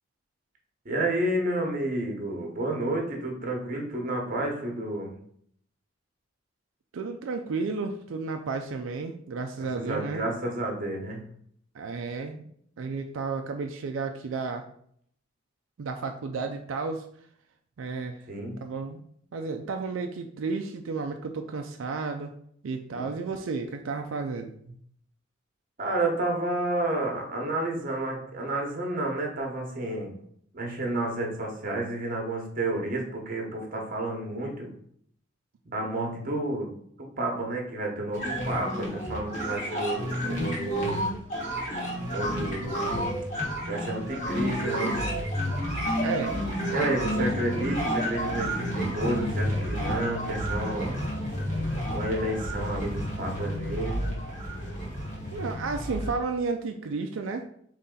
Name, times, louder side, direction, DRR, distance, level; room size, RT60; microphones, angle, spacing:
voice 1, 0.8-5.1 9.8-11.2 18.3-18.6 22.9-23.0 25.8-30.1 30.5-34.7 35.7-36.7 37.0-41.0 42.1-42.8 43.7-45.2 46.7-51.0 51.9-54.2, right 1 dB, 45° right, 1 dB, 1.1 m, -30 dB
voice 2, 6.9-10.2 11.7-12.5 12.8-14.6 15.8-17.1 17.8-18.2 18.6-19.0 19.3-22.3 22.6-24.5 46.0-46.4 47.1-47.2 47.6-47.9 55.3-57.5, right 4 dB, 85° right, 4 dB, 0.4 m, -32 dB
sound 1, 38.1-56.2, equal, 40° left, 1.5 m, -30 dB
4.0 x 3.2 x 3.8 m, 0.65 s
head